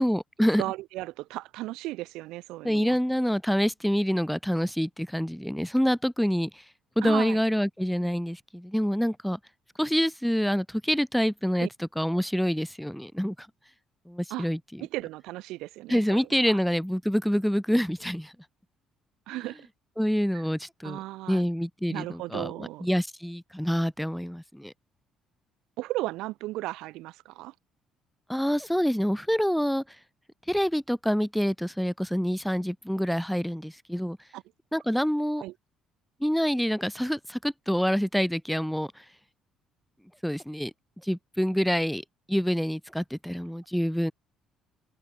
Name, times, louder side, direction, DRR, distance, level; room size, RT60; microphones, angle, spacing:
voice 1, 0.0-0.6 2.6-6.6 7.0-9.4 9.8-13.5 14.1-14.9 15.9-18.3 20.0-21.0 21.3-24.7 28.3-29.8 30.5-34.2 34.7-35.4 36.2-39.0 40.2-40.7 41.0-42.0 42.3-44.1, equal, ahead, 0.6 m, -26 dB
voice 2, 0.6-3.0 7.0-7.4 11.6-11.7 14.3-14.5 14.8-16.6 19.3-19.7 20.3-20.4 20.8-21.4 21.9-22.9 25.8-27.5 34.3-34.4 35.4-35.5, right 18 dB, 85° right, 0.5 m, -35 dB
open air
cardioid pair, 105°, 0 cm